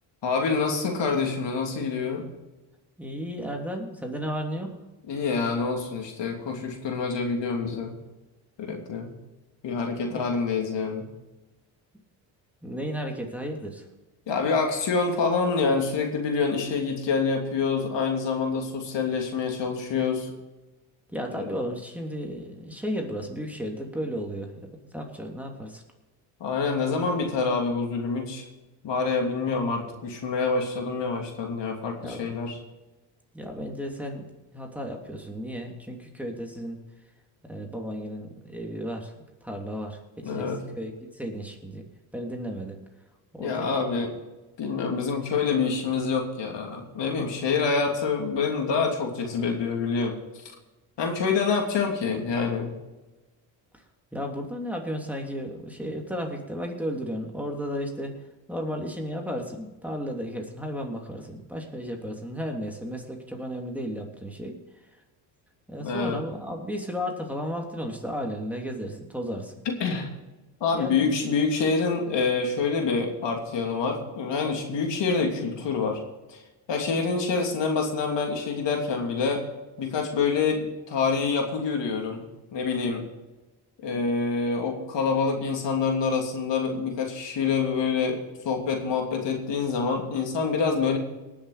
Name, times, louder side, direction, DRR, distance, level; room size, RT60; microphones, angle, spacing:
voice 1, 0.2-2.3 5.1-7.9 8.6-9.1 9.6-11.1 14.3-20.3 21.3-21.4 26.4-28.4 28.8-32.6 40.2-40.6 43.4-44.1 44.6-50.2 51.0-52.7 65.8-66.2 69.6-70.1 70.6-76.0 76.3-76.4 76.7-79.4 79.8-82.3 82.5-83.1 83.8-91.0, left 5 dB, 60° left, 2 dB, 3.0 m, -26 dB
voice 2, 3.0-4.7 10.1-10.3 12.6-13.9 21.1-24.5 24.9-25.8 32.0-32.2 33.3-34.3 34.5-36.8 37.5-39.1 39.4-41.8 42.1-42.8 43.3-43.7 53.7-53.8 54.1-58.2 58.5-64.6 65.7-69.5 70.7-71.1, equal, 5° right, 1 dB, 3.0 m, -34 dB
19.0 x 7.2 x 5.0 m, 1.1 s
supercardioid pair, 70°, 49 cm